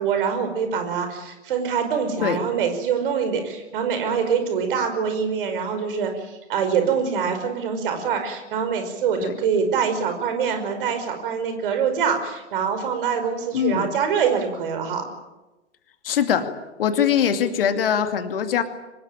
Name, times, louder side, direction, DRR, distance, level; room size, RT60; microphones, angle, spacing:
voice 1, 0.0-15.1, right 6 dB, 45° right, 7 dB, 5.4 m, -24 dB
voice 2, 13.5-13.9 16.0-16.5 16.8-18.6, left 8 dB, 50° left, 8 dB, 2.5 m, -22 dB
25.0 x 20.5 x 9.1 m, 1.1 s
figure-of-eight pair, 115°, 36 cm